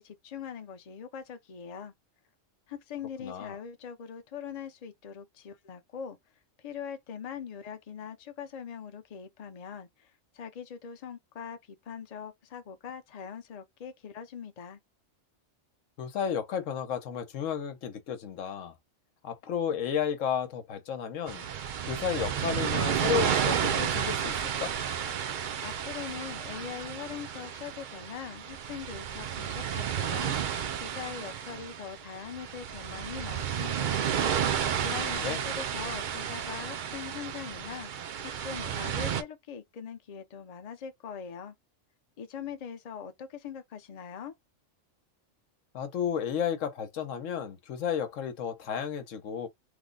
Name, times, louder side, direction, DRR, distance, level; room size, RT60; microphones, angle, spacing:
voice 1, 0.0-1.9 2.7-6.2 6.6-14.8 25.6-30.3 30.7-34.0 34.8-37.9 38.2-41.5 42.2-44.3, left 7 dB, 40° left, 0.6 m, -42 dB
voice 2, 3.2-3.5 16.0-18.7 19.2-21.5 21.9-24.7 34.9-35.4 45.7-49.5, left 8 dB, 90° left, 1.1 m, -33 dB
sound 1, 21.3-39.2, right 8 dB, 60° right, 0.5 m, -32 dB
3.3 x 2.1 x 3.7 m
omnidirectional pair, 1.3 m